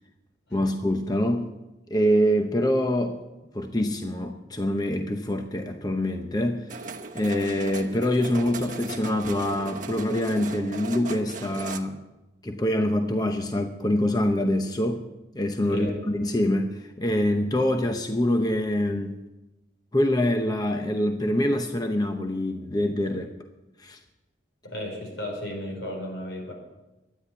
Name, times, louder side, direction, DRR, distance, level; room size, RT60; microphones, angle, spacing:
voice 1, 0.5-1.6 1.9-3.2 3.5-6.8 7.1-12.0 12.4-15.1 15.3-19.2 19.9-23.3 23.8-24.0, left 1 dB, 20° left, 5 dB, 0.7 m, -25 dB
sound 1, 6.7-11.8, right 3 dB, 40° right, 1.1 m, -37 dB
voice 2, 24.6-26.5, left 1 dB, 80° left, 0 dB, 5.2 m, -34 dB
12.5 x 10.0 x 8.1 m, 1.0 s
head